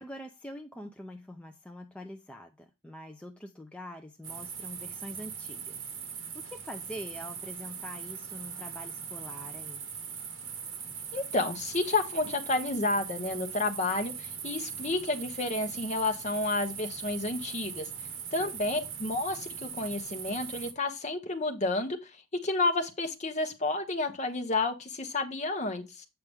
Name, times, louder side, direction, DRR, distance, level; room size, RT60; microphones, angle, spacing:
voice 1, 0.0-9.8 18.4-18.5, equal, 5° left, 0.5 m, -45 dB
sound 1, 4.2-20.7, right 7 dB, 70° right, 1.5 m, -40 dB
voice 2, 11.1-17.9 18.3-26.1, left 2 dB, 35° left, 1.1 m, -31 dB
8.0 x 5.7 x 3.5 m
head